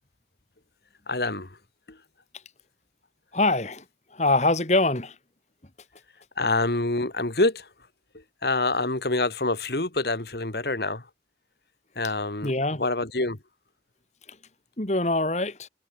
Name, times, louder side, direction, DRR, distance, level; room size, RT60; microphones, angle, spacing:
voice 1, 1.1-1.5 1.9-2.0 6.4-7.7 8.4-11.0 12.0-12.5 12.8-13.4, left 2 dB, 60° left, 2.0 m, -26 dB
voice 2, 3.3-3.8 4.1-5.2 12.4-12.8 14.8-15.7, left 2 dB, 40° left, 2.0 m, -24 dB
head